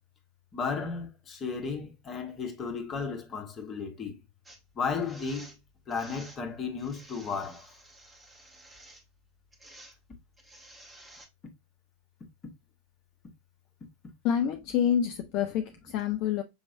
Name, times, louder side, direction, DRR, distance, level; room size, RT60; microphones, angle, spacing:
voice 1, 0.5-4.2 4.7-5.6 5.9-7.7, left 5 dB, 25° left, 1.2 m, -34 dB
sound 1, 4.5-4.6 5.0-5.6 5.9-6.4 6.8-9.0 9.5-10.0 10.4-11.3, right 1 dB, 10° right, 1.3 m, -52 dB
voice 2, 14.2-16.4, left 9 dB, 40° left, 0.5 m, -27 dB
6.4 x 3.0 x 2.7 m
figure-of-eight pair, 90°, 0 cm